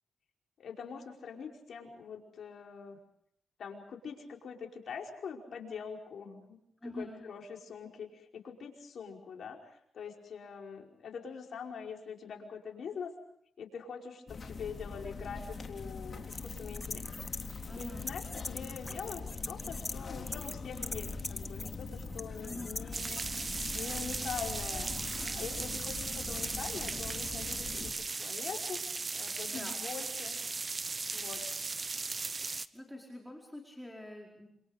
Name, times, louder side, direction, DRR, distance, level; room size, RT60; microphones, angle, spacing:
voice 1, 0.6-3.0 3.6-13.1 13.6-17.0 17.7-23.3 23.7-25.0 25.4-28.8 29.1-30.4 31.1-31.4, left 6 dB, 75° left, 1 dB, 5.2 m, -44 dB
voice 2, 6.8-7.2 17.6-18.1 22.4-23.2 29.5-29.7 32.7-34.5, left 1 dB, 5° left, -1 dB, 4.7 m, -46 dB
sound 1, 14.3-27.9, left 4 dB, 50° left, 3.6 m, -42 dB
sound 2, 16.3-20.0 20.3-27.5, left 2 dB, 25° left, 1.3 m, -43 dB
sound 3, 22.9-32.7, right 4 dB, 40° right, 1.1 m, -37 dB
28.0 x 27.5 x 5.2 m, 0.71 s
cardioid pair, 70°, 0 cm